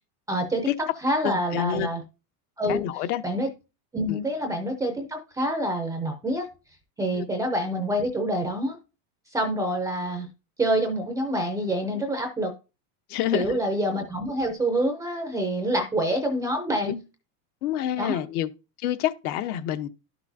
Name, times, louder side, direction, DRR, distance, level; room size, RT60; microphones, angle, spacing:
voice 1, 0.3-0.7 1.0-2.0 2.6-2.8 3.2-3.5 3.9-6.5 7.0-8.8 9.3-10.3 10.6-12.5 13.3-17.0 18.0-18.2, right 1 dB, 10° right, 0.4 m, -26 dB
voice 2, 1.2-1.9 2.7-3.2 4.1-4.2 7.1-7.2 13.1-13.6 16.8-16.9 17.6-18.5 18.8-19.9, left 11 dB, 75° left, 0.9 m, -27 dB
11.5 x 6.0 x 2.6 m
supercardioid pair, 160°, 45 cm